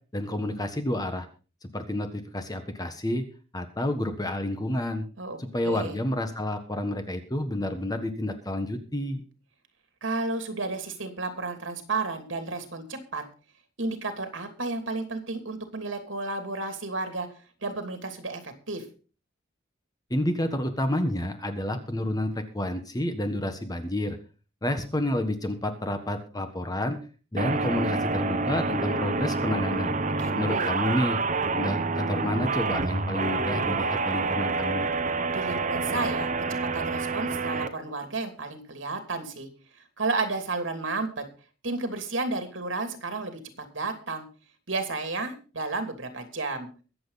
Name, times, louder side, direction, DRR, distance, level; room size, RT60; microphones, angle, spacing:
voice 1, 0.1-1.3 1.6-3.2 3.5-5.0 5.4-9.2 20.1-24.2 24.6-27.0 27.3-30.0 30.3-31.2 31.5-34.9, left 1 dB, 20° left, 7 dB, 1.4 m, -29 dB
voice 2, 5.6-6.0 10.0-13.2 13.8-17.3 17.6-18.8 30.0-30.7 35.3-36.3 36.7-39.5 40.0-41.2 41.6-43.4 43.7-44.3 44.7-46.7, right 3 dB, 75° right, 7 dB, 2.9 m, -32 dB
sound 1, 27.4-37.7, right 3 dB, 40° right, 1.1 m, -28 dB
23.0 x 7.8 x 4.1 m, 0.36 s
head